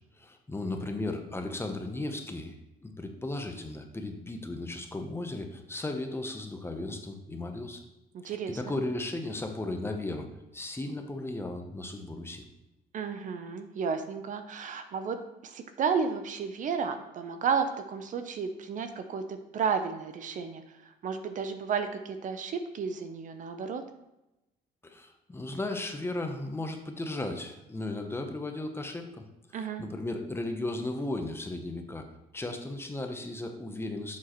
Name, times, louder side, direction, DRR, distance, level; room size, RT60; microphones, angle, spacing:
voice 1, 0.2-2.6 2.8-7.8 8.2-12.4 24.8-32.1 32.3-34.2, left 2 dB, 15° left, 5 dB, 0.8 m, -36 dB
voice 2, 8.1-8.7 12.9-23.8 29.5-29.8, right 6 dB, 50° right, 8 dB, 0.7 m, -32 dB
7.4 x 6.3 x 3.0 m, 0.93 s
cardioid pair, 110°, 17 cm